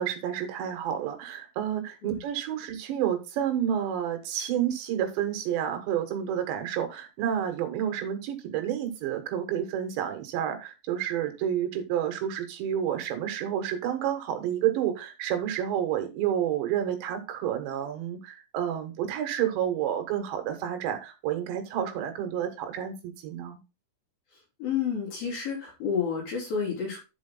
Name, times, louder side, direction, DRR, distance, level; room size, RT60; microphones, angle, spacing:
voice 1, 0.0-23.6, right 10 dB, 75° right, 6 dB, 3.5 m, -30 dB
voice 2, 24.6-27.0, left 6 dB, 50° left, -3 dB, 4.9 m, -30 dB
11.0 x 5.0 x 3.9 m, 0.28 s
omnidirectional pair, 5.4 m